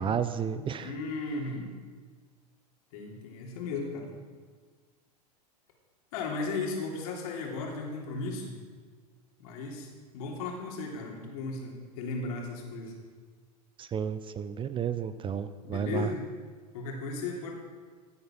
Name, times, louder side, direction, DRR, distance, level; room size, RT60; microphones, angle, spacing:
voice 1, 0.0-0.9 13.8-16.1, right 7 dB, 25° right, 13 dB, 0.6 m, -32 dB
voice 2, 0.8-1.7 2.9-4.1 6.1-8.5 9.4-12.9 15.6-16.2 16.7-17.5, left 3 dB, 60° left, 0 dB, 3.4 m, -35 dB
15.5 x 8.0 x 6.0 m, 1.5 s
hypercardioid pair, 95°, 20 cm